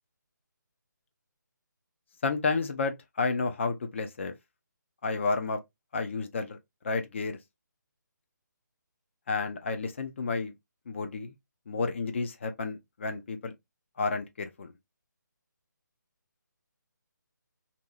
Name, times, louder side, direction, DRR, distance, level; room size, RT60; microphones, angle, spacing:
voice 1, 2.2-4.3 5.0-5.6 5.9-6.6 6.8-7.4 9.3-10.5 10.9-11.3 11.7-13.5 14.0-14.7, left 4 dB, 40° left, 0.5 m, -31 dB
2.7 x 2.6 x 2.3 m
figure-of-eight pair, 150°, 10 cm